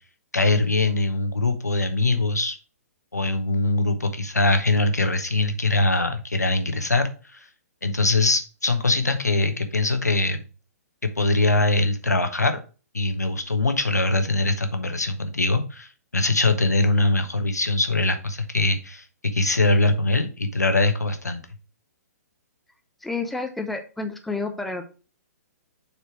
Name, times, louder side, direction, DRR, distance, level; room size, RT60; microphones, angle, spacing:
voice 1, 0.3-2.6 3.1-7.4 7.8-10.4 11.2-12.6 12.9-21.4, left 2 dB, 90° left, 7 dB, 1.1 m, -22 dB
voice 2, 23.0-24.8, left 3 dB, ahead, 4 dB, 0.8 m, -30 dB
6.8 x 4.4 x 4.4 m, 0.35 s
figure-of-eight pair, 125°, 9 cm